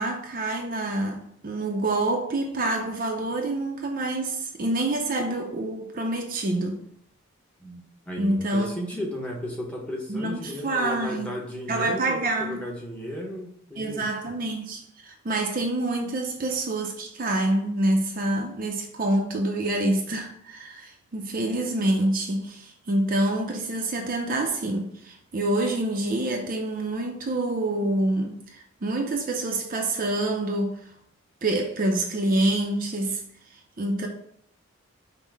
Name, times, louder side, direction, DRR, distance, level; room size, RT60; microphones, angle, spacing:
voice 1, 0.0-6.9 8.2-8.7 10.1-11.3 11.7-12.6 13.8-30.7 31.4-33.2 33.8-34.1, right 1 dB, 40° right, 0.5 m, -27 dB
voice 2, 7.6-14.3, equal, 5° left, 0.8 m, -34 dB
5.4 x 2.1 x 4.6 m
head